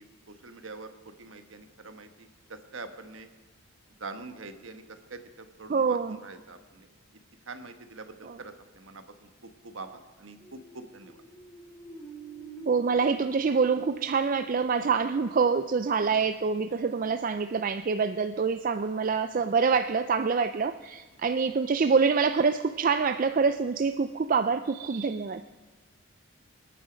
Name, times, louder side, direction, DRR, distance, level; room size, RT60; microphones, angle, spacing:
voice 1, 0.0-3.3 4.0-6.9 7.5-11.2, right 3 dB, 70° right, 8 dB, 1.3 m, -45 dB
voice 2, 5.7-6.2 8.2-8.4 12.7-25.4, right 5 dB, 40° right, 10 dB, 0.4 m, -26 dB
sound 1, 10.3-15.9, right 5 dB, 15° left, 2.5 m, -47 dB
25.5 x 9.2 x 5.1 m, 1.4 s
head